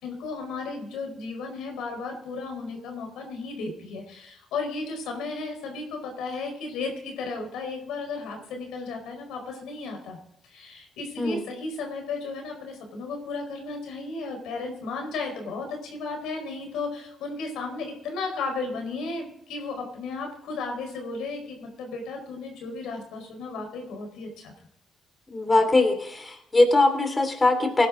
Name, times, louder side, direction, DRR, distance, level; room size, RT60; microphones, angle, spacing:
voice 1, 0.0-10.2 10.4-24.5, left 3 dB, 90° left, 3 dB, 4.6 m, -34 dB
voice 2, 25.3-27.9, left 2 dB, 25° left, 6 dB, 2.8 m, -21 dB
18.0 x 10.5 x 3.9 m, 0.77 s
cardioid pair, 90°, 0 cm